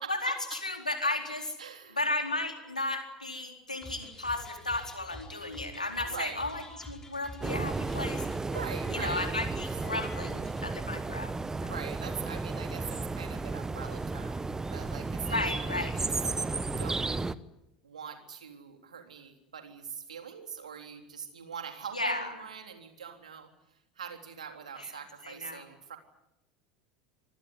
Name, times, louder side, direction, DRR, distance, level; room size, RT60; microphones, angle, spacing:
voice 1, 0.1-1.6 1.9-8.2 8.9-11.3 11.6-11.7 15.3-15.9 21.9-22.3 24.8-24.9 25.2-25.6, left 2 dB, 90° left, 4 dB, 4.1 m, -34 dB
voice 2, 1.6-2.0 6.0-6.4 8.5-9.8 11.6-17.1 17.8-23.5 24.0-26.0, right 7 dB, 75° right, 5 dB, 3.6 m, -43 dB
sound 1, 3.8-10.6, left 1 dB, 15° left, 5.7 m, -47 dB
sound 2, 7.4-17.3, right 3 dB, 15° right, 1.1 m, -33 dB
26.5 x 19.5 x 9.4 m, 0.88 s
figure-of-eight pair, 75°, 4 cm